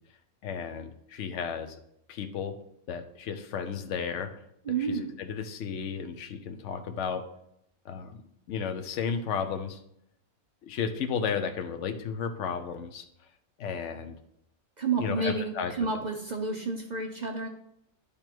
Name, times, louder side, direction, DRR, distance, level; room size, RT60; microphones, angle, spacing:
voice 1, 0.4-1.7 2.1-2.5 2.9-4.3 4.9-7.2 7.8-8.2 8.5-9.8 10.6-13.0 13.6-14.2 15.0-15.7, left 6 dB, 60° left, 8 dB, 1.0 m, -33 dB
voice 2, 4.6-5.1 14.8-17.5, right 4 dB, 40° right, 2 dB, 0.7 m, -30 dB
9.9 x 3.5 x 4.5 m, 0.74 s
omnidirectional pair, 1.5 m